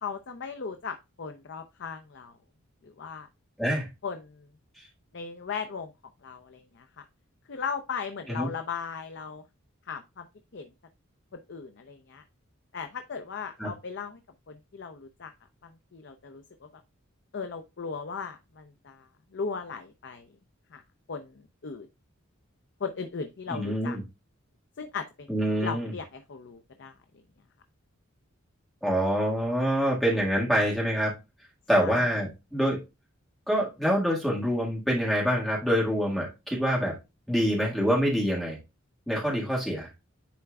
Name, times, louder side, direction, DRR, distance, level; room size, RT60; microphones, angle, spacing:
voice 1, 0.0-2.3 2.8-3.3 4.0-4.4 5.1-5.9 6.2-7.0 7.5-9.4 9.9-10.3 10.5-10.7 11.3-12.2 12.7-14.2 14.5-15.3 15.6-16.7 17.3-19.1 19.3-20.3 20.7-20.8 21.1-21.9 22.8-24.0 24.8-25.3 25.6-26.9 31.8-32.1, left 5 dB, 55° left, 7 dB, 0.6 m, -37 dB
voice 2, 23.5-24.0 25.3-25.9 28.8-31.1 31.7-32.8 33.5-36.9 37.3-38.6 39.1-39.9, equal, ahead, -4 dB, 1.8 m, -26 dB
10.0 x 4.4 x 2.4 m, 0.25 s
head